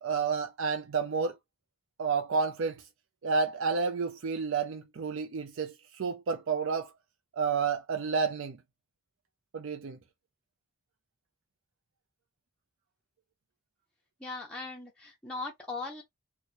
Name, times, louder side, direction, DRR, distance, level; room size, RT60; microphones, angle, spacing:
voice 1, 0.0-1.4 2.0-2.9 3.2-6.9 7.3-8.6 9.5-10.0, right 5 dB, 65° right, 0.4 m, -30 dB
voice 2, 14.2-16.0, left 3 dB, 5° left, 0.5 m, -39 dB
2.9 x 2.1 x 4.1 m
head